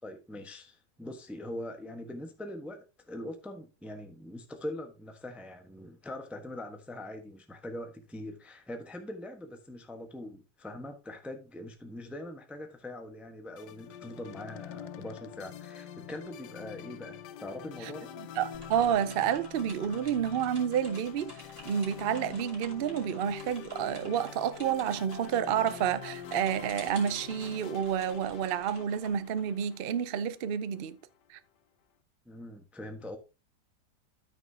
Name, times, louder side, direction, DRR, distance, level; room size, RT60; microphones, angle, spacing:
voice 1, 0.0-18.1 32.2-33.2, left 1 dB, ahead, 1.0 m, -42 dB
sound 1, 13.6-30.9, left 10 dB, 85° left, 1.3 m, -46 dB
voice 2, 18.2-21.3 21.6-31.0 31.3-31.4, right 8 dB, 75° right, 0.5 m, -30 dB
sound 2, 18.5-30.1, right 1 dB, 15° right, 2.9 m, -52 dB
13.0 x 6.1 x 2.8 m
omnidirectional pair, 1.8 m